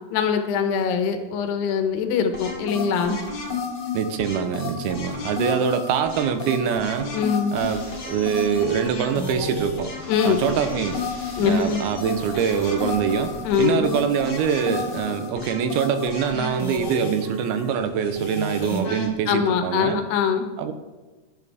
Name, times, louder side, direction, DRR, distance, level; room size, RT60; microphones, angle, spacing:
voice 1, 0.1-3.2 7.1-7.6 10.1-10.4 11.4-11.8 13.4-13.9 19.3-20.5, left 7 dB, 85° left, 6 dB, 3.2 m, -23 dB
sound 1, 2.3-19.1, left 2 dB, 35° left, 1.9 m, -32 dB
voice 2, 3.9-7.1 7.5-9.9 10.3-11.0 11.4-13.3 13.6-20.0 20.6-20.7, right 7 dB, 80° right, 9 dB, 2.6 m, -24 dB
sound 2, 7.6-15.0, left 2 dB, 20° left, 2.3 m, -43 dB
13.0 x 11.0 x 3.5 m, 1.2 s
omnidirectional pair, 4.6 m